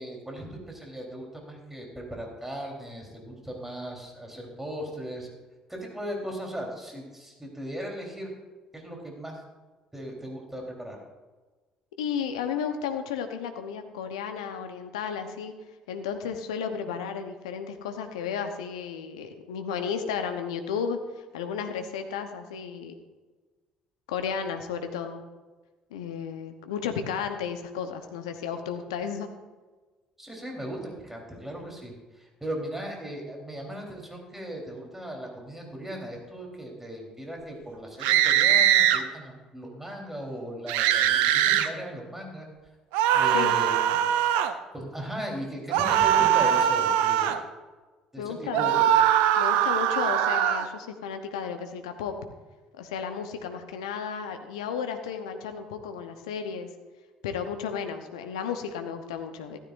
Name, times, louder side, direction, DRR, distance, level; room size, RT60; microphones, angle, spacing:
voice 1, 0.0-5.3 5.7-8.3 8.7-9.4 9.9-11.0 30.2-42.5 43.1-44.1 44.7-47.4 48.1-49.0, right 1 dB, 10° right, 0 dB, 3.8 m, -37 dB
voice 2, 12.0-15.5 15.9-21.0 21.3-23.0 24.1-25.2 25.9-29.3 43.3-43.6 48.2-49.0 49.4-52.1 52.8-56.7 57.2-59.6, left 7 dB, 75° left, 7 dB, 0.9 m, -33 dB
sound 1, 38.0-39.0 40.7-41.7 42.9-44.5 45.7-47.4 48.5-50.7, right 10 dB, 70° right, 0.6 m, -22 dB
14.5 x 13.0 x 2.6 m, 1.3 s
figure-of-eight pair, 55°, 3 cm